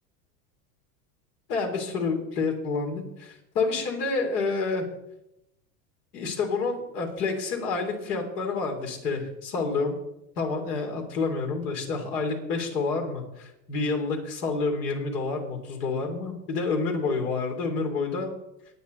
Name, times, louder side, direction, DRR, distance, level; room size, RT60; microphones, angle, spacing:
voice 1, 1.5-4.9 6.1-9.9 10.4-18.3, left 4 dB, 80° left, 3 dB, 3.8 m, -28 dB
20.0 x 8.9 x 4.1 m, 0.85 s
hypercardioid pair, 105°, 46 cm